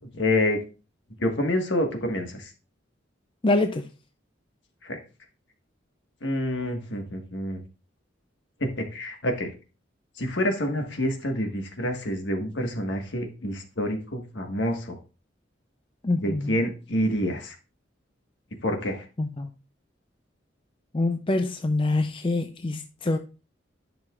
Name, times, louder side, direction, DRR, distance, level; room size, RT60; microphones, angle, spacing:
voice 1, 0.0-0.6 1.2-2.5 4.8-5.0 6.2-7.6 8.6-9.5 10.1-15.0 16.1-17.6 18.6-19.1, left 1 dB, 70° left, 1.6 m, -27 dB
voice 2, 3.4-3.8 16.0-16.5 19.2-19.5 20.9-23.2, left 2 dB, 30° left, 0.5 m, -25 dB
10.5 x 6.0 x 2.4 m
head